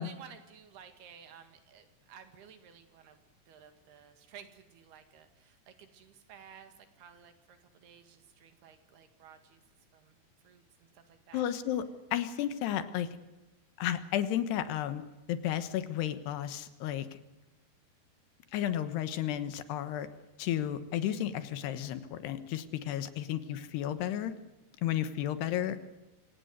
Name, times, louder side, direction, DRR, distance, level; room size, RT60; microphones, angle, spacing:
voice 1, 0.0-3.2 3.5-9.6 9.9-10.2 10.4-11.5, right 8 dB, 70° right, 8 dB, 4.0 m, -54 dB
voice 2, 11.3-11.8 12.1-13.1 13.8-15.0 15.3-17.1 18.5-20.1 20.4-24.3 24.8-25.8, left 11 dB, 85° left, 12 dB, 3.4 m, -32 dB
26.0 x 17.0 x 8.1 m, 1.0 s
omnidirectional pair, 4.8 m